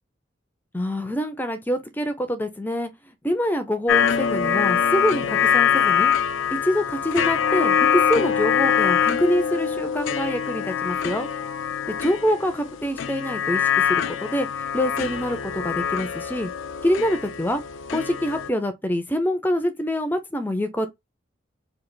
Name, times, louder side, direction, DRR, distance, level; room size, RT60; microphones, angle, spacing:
voice 1, 0.7-2.9 3.2-6.1 6.5-11.3 11.9-14.5 14.7-16.5 16.8-17.6 17.9-20.9, equal, 10° left, 0.5 m, -25 dB
sound 1, 3.9-18.5, left 8 dB, 80° left, 0.4 m, -23 dB
3.3 x 2.4 x 3.8 m
head